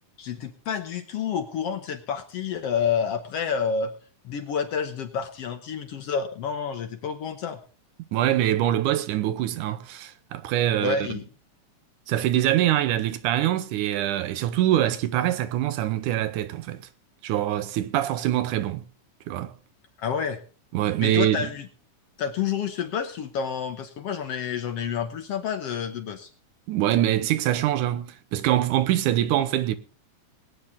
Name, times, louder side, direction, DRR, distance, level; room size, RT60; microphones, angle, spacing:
voice 1, 0.2-3.9 4.3-7.6 10.8-11.2 20.0-20.4 21.0-21.7 22.2-26.3, left 7 dB, 60° left, 1.8 m, -29 dB
voice 2, 8.1-11.0 12.1-16.8 17.2-18.8 19.3-19.5 20.7-21.5 26.7-29.8, right 12 dB, 80° right, 2.3 m, -24 dB
21.0 x 9.4 x 3.6 m
omnidirectional pair, 3.6 m